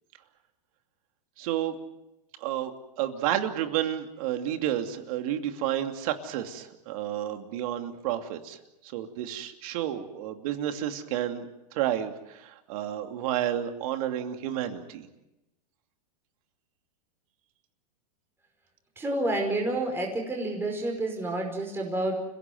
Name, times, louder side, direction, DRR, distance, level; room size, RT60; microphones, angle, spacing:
voice 1, 1.4-1.7 2.4-2.7 3.0-8.6 8.9-11.5 11.7-15.1, right 11 dB, 60° right, 6 dB, 2.7 m, -31 dB
voice 2, 18.9-22.2, right 1 dB, 10° right, 0 dB, 5.2 m, -29 dB
30.0 x 17.0 x 7.9 m, 0.93 s
hypercardioid pair, 130°, 21 cm